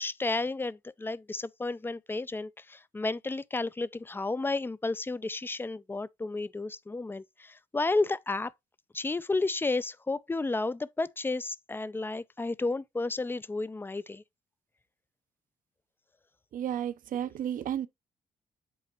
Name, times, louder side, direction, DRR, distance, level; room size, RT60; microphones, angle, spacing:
voice 1, 0.0-8.5 8.9-14.2, left 3 dB, 15° left, 0.4 m, -32 dB
voice 2, 16.5-17.9, right 10 dB, 65° right, 0.7 m, -32 dB
7.7 x 2.9 x 4.6 m
cardioid pair, 85°, 15 cm